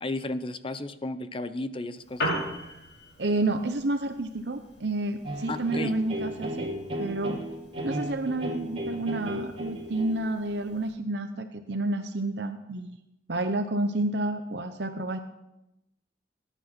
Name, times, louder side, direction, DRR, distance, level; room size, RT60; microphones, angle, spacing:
voice 1, 0.0-2.5 5.5-5.9, left 2 dB, 30° left, 12 dB, 0.8 m, -34 dB
Piano, 1.9-10.9, equal, 80° left, 5.7 m, -40 dB
voice 2, 3.2-6.7 7.0-7.4 7.8-13.0 13.3-15.2, right 2 dB, 70° right, 7 dB, 0.9 m, -30 dB
sound 1, 5.2-10.3, equal, 35° right, 3.2 m, -35 dB
19.5 x 10.0 x 5.9 m, 0.92 s
head